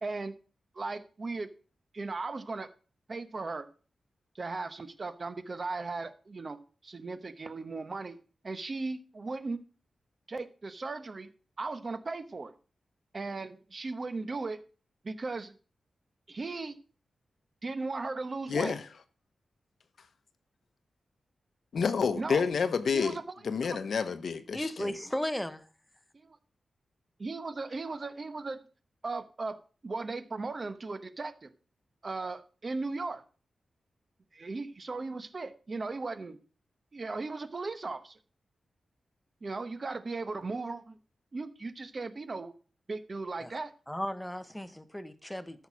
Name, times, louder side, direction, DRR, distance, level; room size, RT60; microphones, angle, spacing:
voice 1, 0.0-0.3 0.7-1.5 1.9-2.7 3.1-3.6 4.3-6.6 6.8-9.6 10.3-11.3 11.6-12.5 13.1-14.6 15.0-15.5 16.3-16.8 17.6-18.7 22.1-22.5 22.9-23.2 23.6-23.8 26.1-26.4 27.2-28.6 29.0-29.5 29.8-31.5 32.0-33.2 34.3-36.4 36.9-38.2 39.4-41.0 41.3-42.5 42.9-43.7, right 3 dB, 35° right, 0.9 m, -37 dB
voice 2, 18.5-18.9 21.7-23.2 23.4-24.9, left 6 dB, 65° left, 1.0 m, -29 dB
voice 3, 24.5-25.6 43.4-43.5 43.9-45.7, left 1 dB, 5° left, 0.8 m, -35 dB
13.0 x 5.7 x 6.1 m
wide cardioid pair, 140°, 0 cm